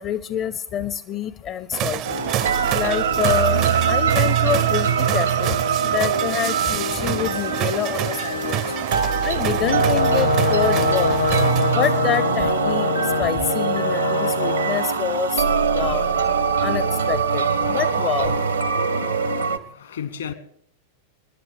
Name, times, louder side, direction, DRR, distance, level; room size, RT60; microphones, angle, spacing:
voice 1, 0.0-2.2 2.7-5.6 5.8-8.6 9.2-11.1 11.7-15.5 15.7-16.1 16.6-18.4, left 9 dB, 35° left, 0.5 m, -26 dB
sound 1, 1.7-12.1, right 13 dB, 40° right, 0.5 m, -29 dB
sound 2, 2.0-19.6, right 6 dB, 75° right, 0.9 m, -22 dB
voice 2, 5.7-6.1 8.7-8.9 18.8-19.2 19.7-20.3, left 8 dB, 70° left, 1.4 m, -36 dB
Brass instrument, 9.6-14.8, left 4 dB, 85° left, 1.5 m, -24 dB
29.0 x 10.5 x 3.4 m
figure-of-eight pair, 90°, 0 cm